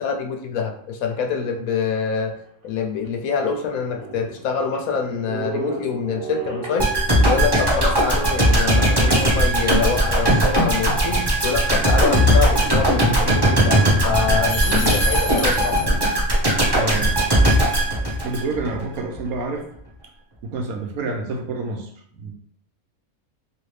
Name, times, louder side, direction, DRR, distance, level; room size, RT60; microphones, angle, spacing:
voice 1, 0.0-2.3 2.6-6.9 7.2-16.0, left 6 dB, 80° left, 4 dB, 1.0 m, -25 dB
sound 1, 2.4-2.5 3.0-3.1 3.3-7.4 9.1-10.2, right 3 dB, 55° right, 0.9 m, -34 dB
sound 2, 6.8-18.8 19.1-19.3, right 1 dB, 25° right, 0.6 m, -18 dB
sound 3, 14.5-16.2, left 3 dB, 55° left, 0.9 m, -29 dB
voice 2, 16.7-17.1 18.2-19.6 20.4-22.3, right 3 dB, 85° right, 3 dB, 1.2 m, -28 dB
3.1 x 2.8 x 3.2 m, 0.67 s
omnidirectional pair, 1.5 m